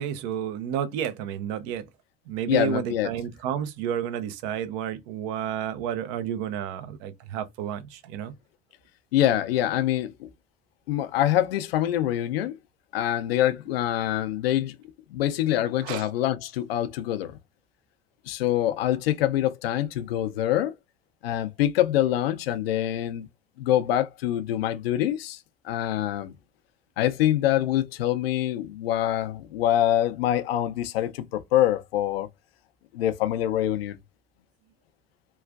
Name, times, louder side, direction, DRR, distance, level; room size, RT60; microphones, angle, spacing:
voice 1, 0.0-1.9 2.3-8.3 15.8-16.0, right 9 dB, 65° right, 0.6 m, -31 dB
voice 2, 2.5-3.1 9.1-10.3 10.9-12.6 12.9-14.8 15.1-17.4 18.3-20.8 21.2-23.3 23.6-25.4 25.6-26.3 27.0-32.3 32.9-34.0, left 12 dB, 80° left, 0.5 m, -25 dB
3.1 x 2.4 x 2.3 m
hypercardioid pair, 60°, 29 cm